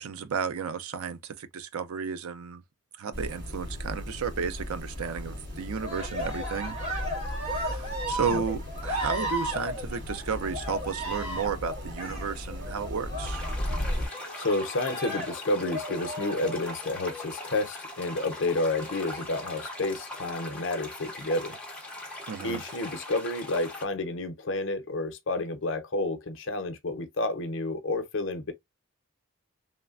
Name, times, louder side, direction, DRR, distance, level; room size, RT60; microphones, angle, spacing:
voice 1, 0.0-2.6 3.0-6.8 7.4-13.4 22.3-22.6, right 6 dB, 85° right, 0.5 m, -33 dB
sound 1, 3.1-14.1, left 1 dB, 55° right, 2.1 m, -36 dB
Cheering, 5.8-17.5 18.7-19.6 20.3-20.9, right 1 dB, 30° right, 1.7 m, -36 dB
sound 2, 13.2-23.8, left 2 dB, 5° left, 0.7 m, -41 dB
voice 2, 14.4-21.6 22.4-28.5, left 2 dB, 60° left, 0.7 m, -30 dB
3.2 x 2.1 x 2.3 m
head